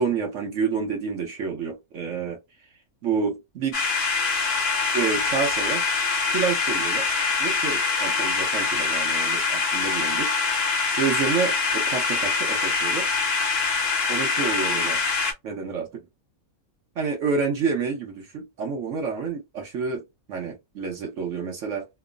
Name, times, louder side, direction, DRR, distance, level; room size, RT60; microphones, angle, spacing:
voice 1, 0.0-2.4 3.0-3.8 4.9-5.8 6.3-7.1 7.4-10.3 11.0-13.1 14.1-15.0 15.4-16.1 17.0-20.0 20.3-21.9, right 5 dB, 65° right, 1.0 m, -28 dB
sound 1, 3.7-15.3, left 4 dB, 50° left, 1.0 m, -24 dB
3.0 x 2.0 x 2.3 m
omnidirectional pair, 1.5 m